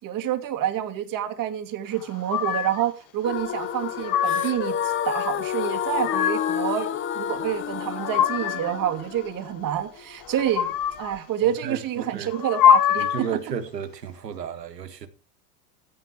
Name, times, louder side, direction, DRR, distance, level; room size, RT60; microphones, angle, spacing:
voice 1, 0.0-6.9 7.1-13.3, right 11 dB, 40° right, 2.5 m, -28 dB
sound 1, 2.3-2.9 3.7-4.7 5.7-6.7 7.6-8.8 10.3-11.2 12.3-13.3, left 9 dB, 45° left, 1.7 m, -23 dB
sound 2, 3.2-11.2, left 9 dB, 25° left, 0.8 m, -30 dB
voice 2, 11.4-12.3 13.0-15.1, right 7 dB, 90° right, 1.7 m, -33 dB
15.5 x 5.7 x 4.7 m
hypercardioid pair, 85°, 48 cm